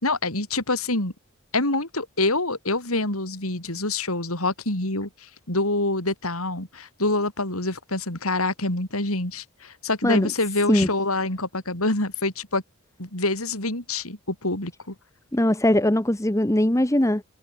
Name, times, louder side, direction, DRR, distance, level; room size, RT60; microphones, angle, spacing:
voice 1, 0.0-1.1 1.5-12.6 13.0-14.9, left 2 dB, 80° left, 6.5 m, -26 dB
voice 2, 15.3-17.2, left 1 dB, 15° left, 0.9 m, -20 dB
head